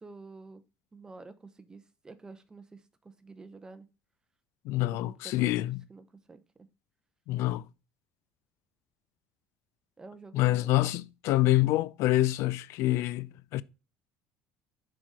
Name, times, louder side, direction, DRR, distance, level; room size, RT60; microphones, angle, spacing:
voice 1, 0.0-0.6 0.9-3.9 5.0-6.4 10.0-10.9, right 3 dB, 15° right, 0.7 m, -49 dB
voice 2, 4.7-5.8 7.3-7.6 10.3-13.6, left 16 dB, 65° left, 0.4 m, -26 dB
6.0 x 4.8 x 4.1 m
cardioid pair, 155°, 5 cm